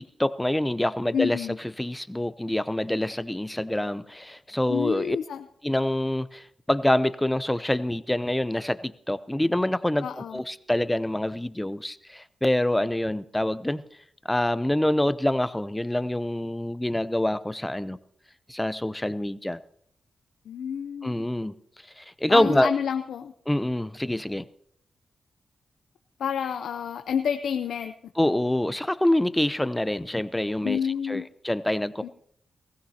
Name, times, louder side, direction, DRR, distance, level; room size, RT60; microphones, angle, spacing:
voice 1, 0.0-1.5 1.8-5.2 5.6-13.9 14.3-18.0 18.5-19.6 21.0-21.5 22.0-22.7 23.5-24.5 28.2-32.1, left 1 dB, 10° left, 15 dB, 0.6 m, -26 dB
voice 2, 1.1-1.6 4.7-5.4 10.0-10.4 20.5-21.1 22.3-23.3 26.2-27.9 30.6-31.3 32.0-32.1, left 7 dB, 85° left, 8 dB, 0.5 m, -29 dB
19.0 x 15.5 x 2.8 m, 0.66 s
cardioid pair, 55°, 0 cm